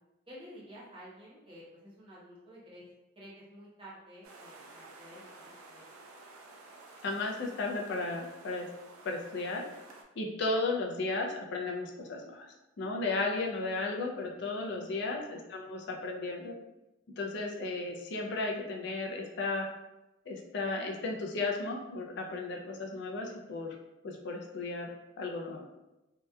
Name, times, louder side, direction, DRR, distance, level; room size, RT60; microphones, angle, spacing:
voice 1, 0.3-2.8 3.1-5.9 14.6-14.9, equal, 25° right, -7 dB, 0.8 m, -51 dB
sound 1, 4.2-10.0, right 3 dB, 90° right, 0.4 m, -53 dB
voice 2, 7.0-8.7 9.0-9.6 10.2-16.5 17.2-19.7 20.3-23.8 24.0-24.9 25.2-25.6, left 3 dB, 55° left, 1 dB, 0.4 m, -34 dB
2.7 x 2.2 x 2.3 m, 0.99 s
head